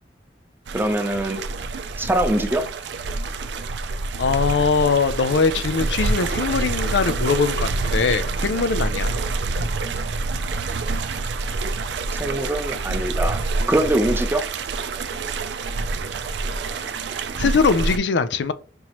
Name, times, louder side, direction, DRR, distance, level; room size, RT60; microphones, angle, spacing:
voice 1, 0.7-1.4 2.0-2.7 12.1-13.4 13.7-14.5, right 1 dB, 10° right, 0.6 m, -22 dB
sound 1, 0.7-18.0, right 3 dB, 75° right, 0.4 m, -27 dB
voice 2, 4.2-9.2 17.3-18.5, left 5 dB, 85° left, 0.5 m, -21 dB
5.3 x 3.0 x 3.0 m
head